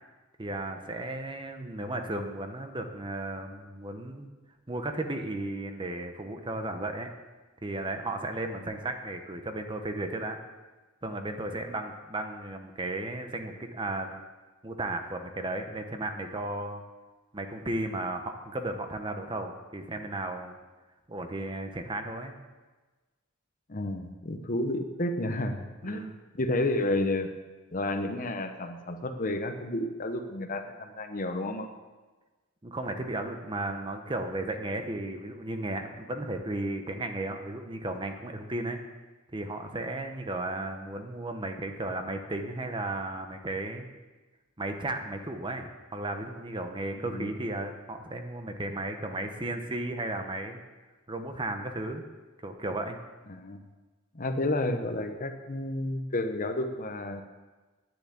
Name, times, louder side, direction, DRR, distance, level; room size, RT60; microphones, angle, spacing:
voice 1, 0.4-4.3 4.7-7.1 7.6-10.4 11.0-14.2 14.6-16.8 17.3-20.6 21.1-22.3 25.8-26.2 32.6-38.8 39.3-43.9 44.6-50.6 51.1-52.0 52.4-53.0, right 2 dB, 25° right, 6 dB, 0.9 m, -34 dB
voice 2, 23.7-26.1 26.4-27.3 27.7-31.7 47.0-47.3 53.3-53.6 54.1-57.2, left 1 dB, 40° left, 7 dB, 0.9 m, -31 dB
10.0 x 7.0 x 8.5 m, 1.3 s
head